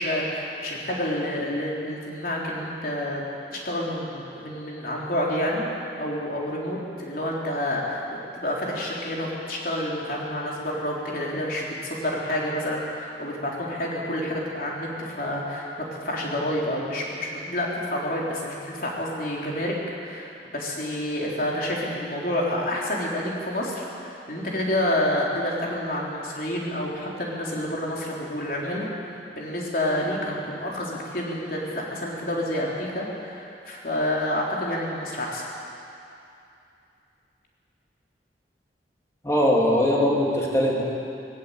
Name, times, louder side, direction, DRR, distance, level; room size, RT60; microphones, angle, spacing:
voice 1, 0.0-3.2 3.5-5.6 6.0-19.8 20.0-35.4, left 1 dB, 50° left, -3 dB, 4.0 m, -29 dB
voice 2, 39.2-40.8, left 1 dB, 15° left, -3 dB, 3.3 m, -21 dB
19.5 x 17.0 x 8.4 m, 2.7 s
head